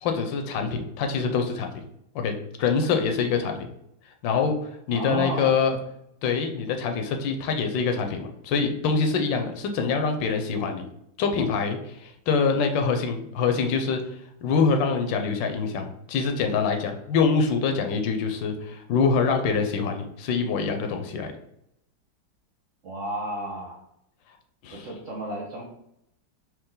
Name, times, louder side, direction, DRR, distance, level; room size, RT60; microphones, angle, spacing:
voice 1, 0.0-1.7 2.1-3.6 4.2-4.6 4.9-5.8 6.2-10.8 11.2-21.3 24.6-24.9, left 5 dB, 75° left, 5 dB, 1.3 m, -25 dB
voice 2, 4.9-5.5 22.8-23.8 24.7-25.6, right 1 dB, 60° right, -2 dB, 0.8 m, -32 dB
4.6 x 2.9 x 3.7 m, 0.79 s
omnidirectional pair, 2.1 m